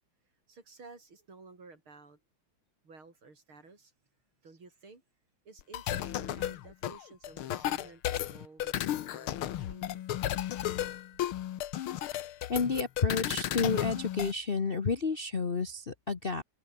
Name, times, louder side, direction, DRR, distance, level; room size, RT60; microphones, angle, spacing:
voice 1, 0.5-2.2 2.8-3.9 4.4-5.0 5.5-10.3, right 3 dB, 70° right, 5.7 m, -54 dB
sound 1, 5.6-14.3, left 12 dB, 80° left, 1.9 m, -34 dB
voice 2, 12.5-16.4, left 4 dB, 35° left, 1.0 m, -30 dB
omnidirectional pair, 2.4 m